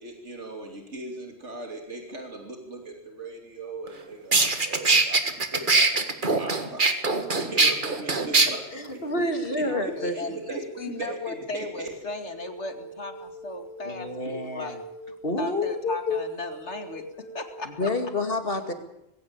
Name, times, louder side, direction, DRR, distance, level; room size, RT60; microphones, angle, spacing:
voice 1, 0.0-6.9 7.3-9.0 9.5-11.9, right 2 dB, 85° right, 2 dB, 3.3 m, -39 dB
sound 1, 3.9-4.0 4.3-8.5, right 3 dB, 45° right, 1.9 m, -21 dB
sound 2, 8.0-17.7, right 1 dB, 65° right, 3.7 m, -44 dB
voice 2, 8.7-10.1 13.8-14.8 15.2-16.2 17.8-18.7, left 2 dB, 55° left, 6 dB, 2.5 m, -28 dB
voice 3, 9.7-14.8 15.4-17.0 17.3-17.9, left 3 dB, 75° left, 6 dB, 2.7 m, -36 dB
20.5 x 16.5 x 8.8 m, 0.85 s
omnidirectional pair, 1.2 m